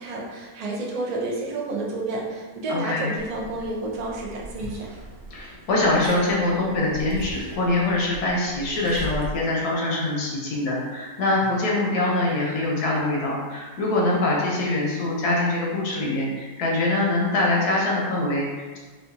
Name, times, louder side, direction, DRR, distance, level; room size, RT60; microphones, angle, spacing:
voice 1, 0.0-4.9, right 2 dB, 80° right, -3 dB, 0.3 m, -30 dB
voice 2, 2.7-3.1 5.3-18.8, left 2 dB, 90° left, -3 dB, 1.4 m, -24 dB
Liquid, 3.2-9.3, right 1 dB, 60° right, 0.9 m, -39 dB
4.9 x 2.4 x 2.7 m, 1.4 s
omnidirectional pair, 1.6 m